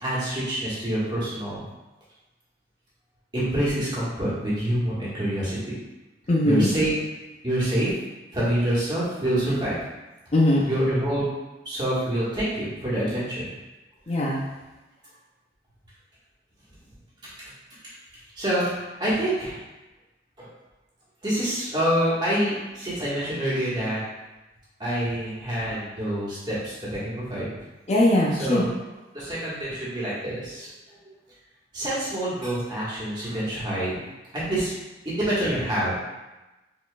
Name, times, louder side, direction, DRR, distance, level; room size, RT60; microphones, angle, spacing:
voice 1, 0.0-1.6 3.3-5.7 6.4-6.9 7.4-7.9 8.3-9.8 10.6-11.3 11.6-13.5 18.4-19.6 20.4-20.5 21.2-24.0 24.8-27.5 28.3-28.7 29.1-31.0 31.7-34.0 34.3-34.7 35.0-36.0, right 1 dB, 25° right, -9 dB, 1.5 m, -26 dB
voice 2, 6.3-6.7 10.3-10.7 14.1-14.4 27.9-28.6, left 1 dB, 40° left, -2 dB, 0.5 m, -20 dB
4.4 x 3.9 x 2.3 m, 1.1 s
head